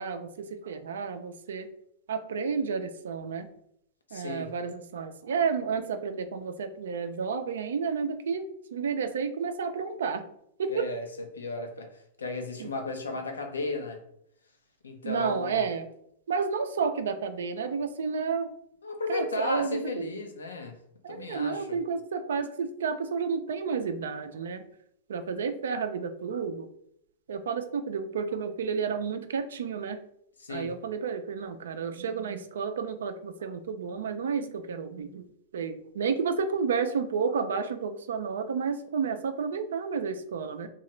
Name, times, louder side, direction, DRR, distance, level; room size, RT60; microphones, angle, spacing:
voice 1, 0.0-1.7 2.1-3.5 4.1-8.5 8.7-10.3 10.6-10.9 12.6-12.7 15.0-15.9 16.3-18.5 19.1-20.1 21.0-24.6 25.1-26.7 27.3-30.0 30.5-35.2 35.5-40.7, right 5 dB, 75° right, 8 dB, 0.4 m, -31 dB
voice 2, 4.1-4.5 10.7-11.0 11.3-14.0 14.8-15.6 18.8-20.8 21.1-21.8 30.4-30.7, left 3 dB, 90° left, 4 dB, 0.6 m, -35 dB
2.8 x 2.3 x 3.1 m, 0.71 s
hypercardioid pair, 105°, 0 cm